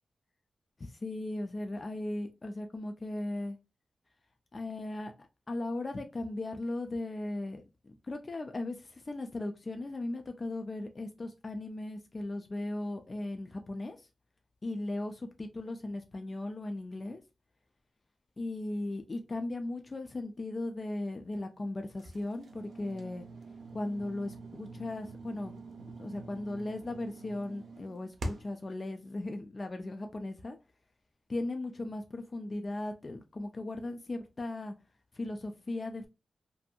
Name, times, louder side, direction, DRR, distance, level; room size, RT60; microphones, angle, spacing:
voice 1, 0.8-3.6 4.5-14.0 14.6-17.2 18.4-23.3 23.7-25.6 26.0-30.6 31.3-34.7 35.2-36.1, left 2 dB, 30° left, 0.3 m, -37 dB
sound 1, 22.0-28.7, right 2 dB, 75° right, 0.5 m, -45 dB
2.6 x 2.6 x 2.2 m
wide cardioid pair, 160°, 0 cm